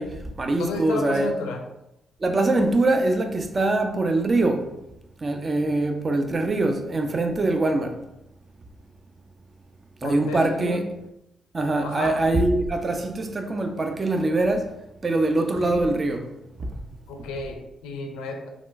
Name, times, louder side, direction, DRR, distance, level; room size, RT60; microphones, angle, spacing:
voice 1, 0.0-1.3 2.2-4.7 5.2-8.0 10.0-10.8 11.5-14.7 15.0-16.2 16.6-16.7, right 2 dB, 40° right, 0.5 m, -23 dB
voice 2, 0.6-1.6 10.0-10.8 11.8-12.2 15.6-15.8 17.1-18.5, left 3 dB, 75° left, 0.4 m, -32 dB
3.5 x 2.4 x 2.5 m
hypercardioid pair, 45°, 0 cm